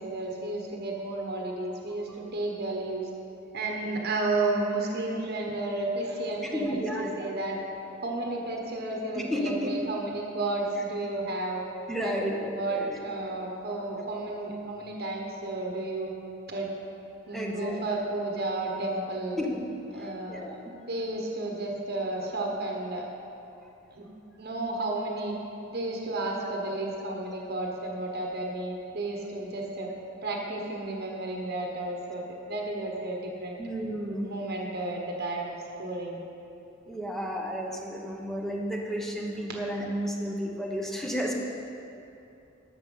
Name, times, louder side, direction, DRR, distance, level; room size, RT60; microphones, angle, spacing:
voice 1, 0.0-3.1 3.5-7.6 8.0-11.6 12.0-16.1 16.5-16.7 17.3-19.4 19.9-20.6 20.9-23.0 23.9-24.0 24.4-25.4 25.7-29.9 30.2-33.6 34.2-36.2, right 2 dB, 50° right, 0 dB, 1.2 m, -32 dB
voice 2, 6.5-7.3 9.1-9.7 11.9-13.0 17.3-17.8 19.4-19.6 20.0-20.5 33.6-34.3 36.9-41.3, equal, ahead, -1 dB, 0.9 m, -32 dB
11.5 x 7.1 x 5.5 m, 2.7 s
head